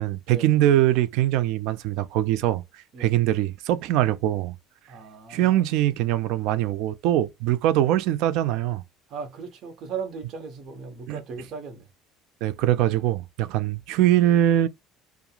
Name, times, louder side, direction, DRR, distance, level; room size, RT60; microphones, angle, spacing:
voice 1, 0.0-2.6 3.0-4.6 5.3-8.8 11.1-11.2 12.4-14.7, right 13 dB, 75° right, 0.4 m, -22 dB
voice 2, 4.9-5.7 9.1-11.9, right 5 dB, 55° right, 1.1 m, -37 dB
2.8 x 2.4 x 2.4 m
supercardioid pair, 105°, 0 cm